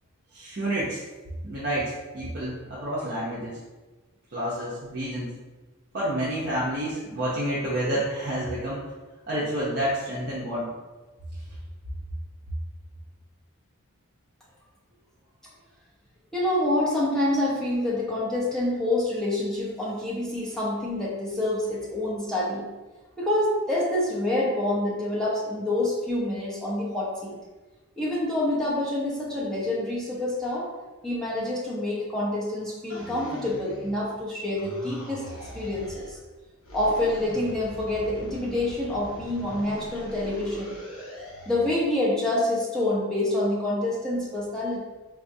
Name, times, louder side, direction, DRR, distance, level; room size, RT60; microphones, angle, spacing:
voice 1, 0.3-1.0 1.4-3.6 4.3-5.3 5.9-8.8 9.3-10.7, right 1 dB, 45° right, -8 dB, 0.6 m, -29 dB
voice 2, 16.3-22.7 23.2-27.3 28.0-30.7 31.0-35.2 35.5-36.2 36.7-40.8 41.5-44.8, left 1 dB, 5° left, -7 dB, 0.7 m, -27 dB
sound 1, 32.9-34.2 34.5-36.2 36.6-41.8, equal, 65° left, 0.9 m, -41 dB
4.0 x 2.4 x 2.6 m, 1.2 s
head